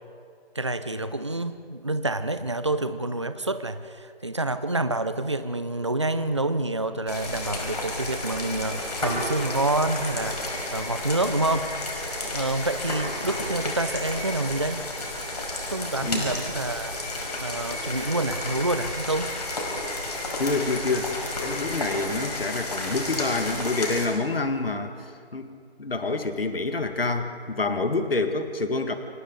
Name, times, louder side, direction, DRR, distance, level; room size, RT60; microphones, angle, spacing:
voice 1, 0.5-11.7 12.3-14.8 15.7-17.0 17.4-19.3, right 2 dB, 30° right, 11 dB, 0.7 m, -28 dB
sound 1, 7.1-24.1, left 2 dB, 40° left, 5.4 m, -31 dB
voice 2, 20.4-21.1 21.4-24.9 25.3-28.9, left 3 dB, 60° left, 6 dB, 2.1 m, -27 dB
28.5 x 27.0 x 4.0 m, 2.2 s
figure-of-eight pair, 170°, 32 cm